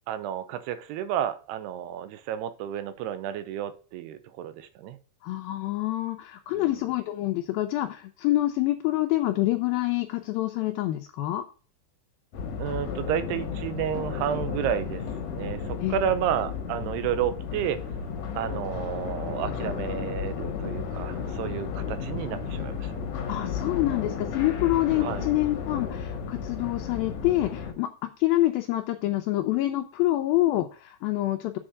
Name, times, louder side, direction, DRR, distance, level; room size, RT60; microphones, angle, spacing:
voice 1, 0.1-5.0 6.6-6.7 12.6-15.0 15.3-17.8 18.3-23.0 25.0-25.3, right 10 dB, 90° right, 11 dB, 2.7 m, -31 dB
voice 2, 5.2-11.5 15.8-16.0 23.3-31.6, left 16 dB, 80° left, 6 dB, 2.2 m, -26 dB
sound 1, 12.3-27.7, left 6 dB, 65° left, 1.8 m, -33 dB
7.7 x 4.3 x 6.2 m, 0.37 s
omnidirectional pair, 4.7 m